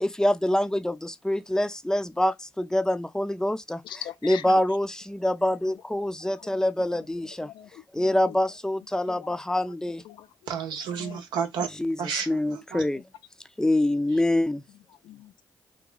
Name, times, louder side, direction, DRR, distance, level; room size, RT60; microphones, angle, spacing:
voice 1, 0.0-3.8 4.2-7.5 7.9-10.0 11.8-13.0 13.6-14.6, left 1 dB, 10° left, 0.4 m, -25 dB
voice 2, 3.8-4.6 6.0-6.6 6.9-8.4 9.1-9.4 10.0-10.3 11.0-11.2 12.9-13.0 15.0-15.5, left 11 dB, 80° left, 0.3 m, -43 dB
voice 3, 10.5-11.7 12.0-12.8 14.1-14.2, right 7 dB, 85° right, 0.7 m, -31 dB
2.9 x 2.3 x 3.7 m
cardioid pair, 65°, 8 cm